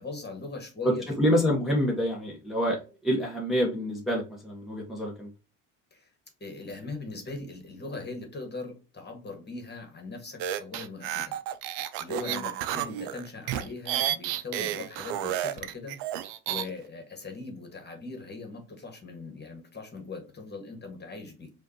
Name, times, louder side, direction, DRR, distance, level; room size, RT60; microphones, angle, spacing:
voice 1, 0.0-1.1 5.9-6.1 6.4-11.4 12.0-21.5, left 3 dB, 25° left, 4 dB, 1.5 m, -40 dB
voice 2, 0.8-5.3 12.2-12.4, equal, ahead, -3 dB, 1.1 m, -27 dB
sound 1, 10.4-16.7, right 11 dB, 70° right, 0.6 m, -31 dB
4.8 x 2.6 x 2.9 m, 0.32 s
hypercardioid pair, 80°, 43 cm